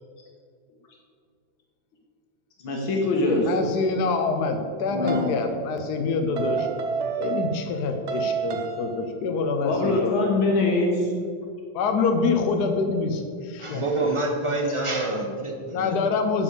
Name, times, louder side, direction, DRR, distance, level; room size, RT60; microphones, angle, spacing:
voice 1, 2.6-3.5 4.9-5.3 9.6-11.1, left 2 dB, 85° left, 0 dB, 2.1 m, -23 dB
voice 2, 3.4-6.7 7.2-10.2 11.7-13.9 15.7-16.4, left 4 dB, 60° left, 5 dB, 1.3 m, -26 dB
sound 1, 5.1-5.4 6.4-7.8 8.1-9.0, right 6 dB, 55° right, 0.7 m, -29 dB
voice 3, 13.6-16.0, right 2 dB, 25° right, 1 dB, 0.7 m, -27 dB
9.9 x 5.4 x 7.0 m, 2.1 s
omnidirectional pair, 2.1 m